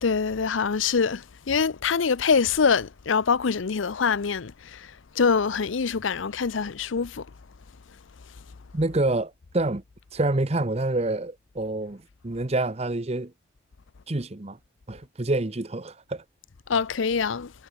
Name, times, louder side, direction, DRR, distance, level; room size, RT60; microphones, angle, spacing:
voice 1, 0.0-7.3 16.7-17.5, left 5 dB, 85° left, 0.6 m, -24 dB
voice 2, 8.7-9.8 10.1-13.3 14.1-14.6 14.9-16.2, right 2 dB, 35° right, 0.9 m, -27 dB
head